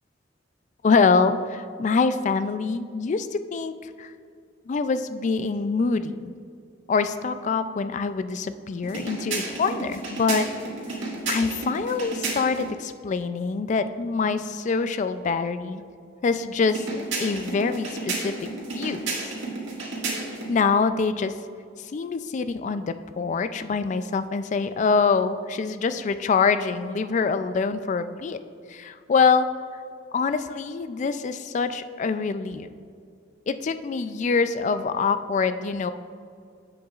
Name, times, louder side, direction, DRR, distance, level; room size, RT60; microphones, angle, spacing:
voice 1, 0.8-4.1 4.7-6.3 6.9-10.4 11.3-15.8 16.2-19.2 20.5-21.3 21.9-28.4 28.7-29.5 30.1-32.7 33.5-35.9, left 4 dB, 40° left, 11 dB, 0.3 m, -25 dB
sound 1, 8.8-12.7 16.6-20.5, right 3 dB, 85° right, 1.9 m, -32 dB
10.5 x 7.7 x 2.4 m, 2.3 s
head